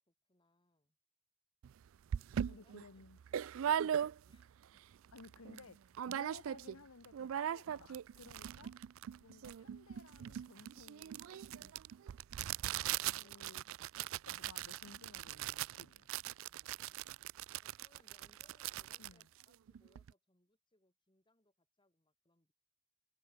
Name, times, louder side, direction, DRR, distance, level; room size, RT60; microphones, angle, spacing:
voice 1, 0.1-1.0 2.2-3.1 3.3-5.0 8.3-8.9 11.8-12.4 13.0-13.9 16.5-17.2 17.6-22.5, left 1 dB, 20° left, 4.0 m, -74 dB
sound 1, 1.6-1.7 2.1-4.5 4.9-5.0 5.2-5.6 5.9-6.8 7.0-20.1, right 10 dB, 65° right, 0.3 m, -40 dB
voice 2, 2.4-3.2 3.8-3.9 5.1-8.8 9.2-11.3 11.5-11.7 13.2-13.6 14.3-16.1 19.0-19.3, left 4 dB, 75° left, 1.0 m, -57 dB
head